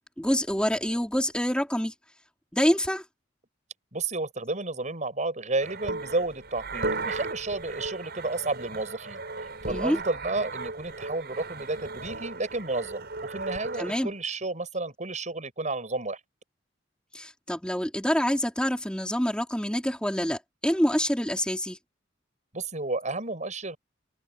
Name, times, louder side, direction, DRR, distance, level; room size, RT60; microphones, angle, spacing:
voice 1, 0.2-1.9 2.5-3.0 9.7-10.0 13.8-14.1 17.1-21.8, equal, 5° left, 3.5 m, -26 dB
voice 2, 3.9-9.2 9.6-16.2 22.5-23.8, right 2 dB, 40° right, 7.2 m, -31 dB
sound 1, 5.6-14.1, right 3 dB, 60° right, 6.8 m, -36 dB
open air
head